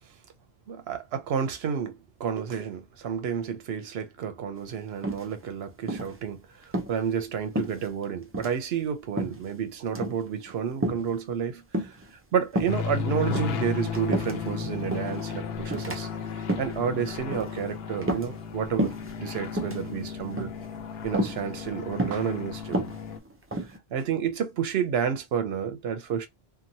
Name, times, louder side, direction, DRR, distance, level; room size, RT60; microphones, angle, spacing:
voice 1, 0.7-12.0 12.3-16.1 16.6-20.5 21.0-22.8 23.9-26.3, right 7 dB, 75° right, 0.9 m, -30 dB
sound 1, 5.0-5.5 5.9-6.2 6.6-6.9 7.5-8.1 8.3-8.6 9.2-9.5 9.9-10.2 10.8-11.1 11.7-12.1 12.5-12.8 13.2-14.5 14.9-15.2 15.7-16.0 16.4-16.8 17.3-17.6 18.0-18.5 18.8-19.1 19.5-19.8 20.4-20.7 21.1-21.4 22.0-22.3 22.6-23.8, right 1 dB, 25° right, 0.3 m, -30 dB
sound 2, 12.7-23.2, left 6 dB, 75° left, 0.8 m, -34 dB
2.9 x 2.3 x 2.7 m
omnidirectional pair, 1.1 m